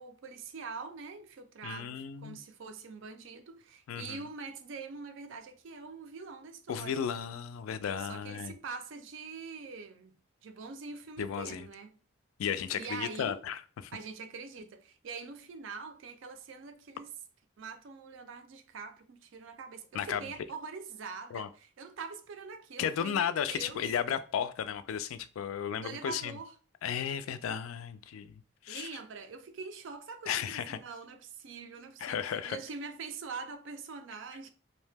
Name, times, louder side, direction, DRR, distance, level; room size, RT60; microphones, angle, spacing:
voice 1, 0.0-7.0 8.0-10.2 10.4-12.0 12.7-13.4 13.9-17.2 17.6-23.9 25.7-26.6 28.7-34.5, right 4 dB, 70° right, 0.4 m, -44 dB
voice 2, 1.6-2.4 3.9-4.2 6.7-8.5 11.2-11.7 12.4-13.9 19.9-20.2 21.3-21.5 22.8-26.3 26.8-28.9 30.3-30.8 32.0-32.6, left 8 dB, 90° left, 0.3 m, -34 dB
2.7 x 2.1 x 3.3 m
head